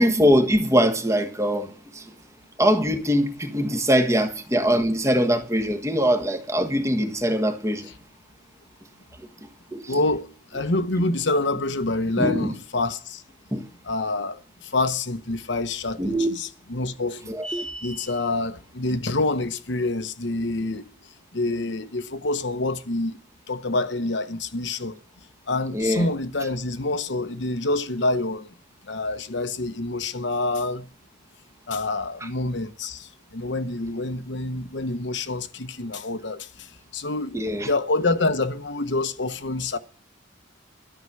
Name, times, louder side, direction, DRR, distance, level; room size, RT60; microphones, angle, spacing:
voice 1, 0.0-2.1 2.6-7.9 9.7-10.0 12.2-12.5 13.5-13.7 16.0-16.3 17.3-17.5 25.7-26.1 37.3-37.7, equal, 15° right, 1.4 m, -22 dB
voice 2, 9.9-13.2 13.8-20.9 21.3-23.2 23.5-25.0 25.5-28.5 28.8-30.9 31.7-39.8, left 2 dB, 60° left, 1.0 m, -27 dB
sound 1, 17.4-18.3, right 1 dB, 5° left, 0.6 m, -34 dB
13.0 x 5.9 x 9.5 m
head